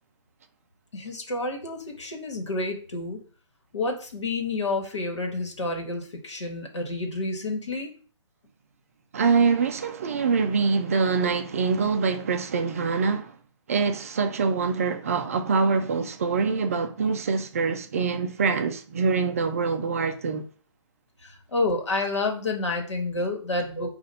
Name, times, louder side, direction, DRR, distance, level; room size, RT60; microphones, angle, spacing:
voice 1, 0.9-3.2 3.7-7.9 21.2-23.9, left 2 dB, 65° left, 1.4 m, -29 dB
voice 2, 9.1-13.3 13.7-20.5, right 5 dB, 30° right, 0.4 m, -24 dB
5.1 x 2.5 x 4.0 m
figure-of-eight pair, 140°, 16 cm